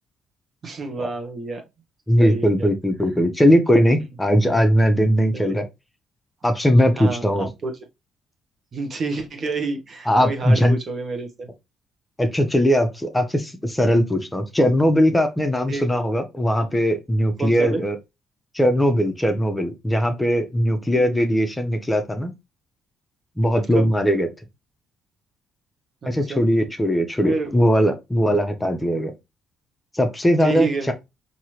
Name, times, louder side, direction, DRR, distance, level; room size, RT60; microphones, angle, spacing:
voice 1, 0.6-1.6 2.2-2.7 7.0-7.7 8.7-11.5 15.7-15.8 17.4-17.8 20.9-21.2 23.7-23.9 26.0-26.4 27.2-27.5 30.4-30.9, right 3 dB, 45° right, 1.1 m, -28 dB
voice 2, 2.1-5.7 6.4-7.5 10.1-10.8 12.2-18.0 18.5-22.3 23.4-24.3 26.1-29.1 29.9-30.9, equal, 10° left, 0.8 m, -19 dB
4.6 x 2.8 x 3.0 m
cardioid pair, 90°, 0 cm